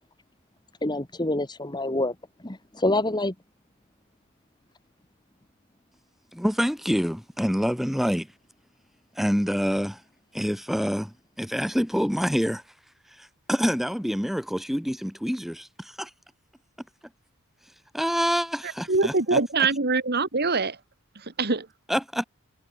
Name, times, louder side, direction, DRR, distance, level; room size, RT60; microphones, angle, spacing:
voice 1, 0.8-2.1 2.4-3.3, left 2 dB, 20° left, 1.6 m, -26 dB
voice 2, 6.3-8.3 9.2-10.0 10.3-12.6 13.2-16.1 17.9-19.4 21.9-22.2, equal, ahead, 7.3 m, -26 dB
voice 3, 18.9-20.8 21.4-21.7, right 3 dB, 45° right, 1.8 m, -23 dB
head